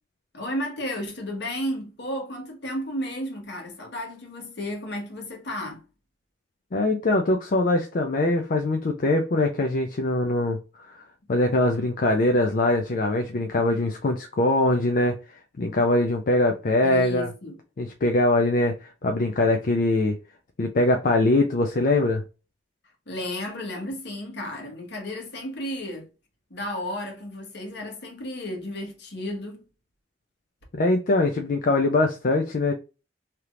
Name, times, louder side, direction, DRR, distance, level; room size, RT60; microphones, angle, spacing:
voice 1, 0.3-5.8 16.8-17.6 23.1-26.1 26.5-29.6, left 1 dB, 65° left, 1.3 m, -33 dB
voice 2, 6.7-10.6 10.9-11.0 11.3-15.2 15.6-17.3 17.8-20.2 20.6-22.2 30.7-32.7, left 2 dB, 50° left, 0.4 m, -22 dB
3.3 x 2.9 x 2.4 m
head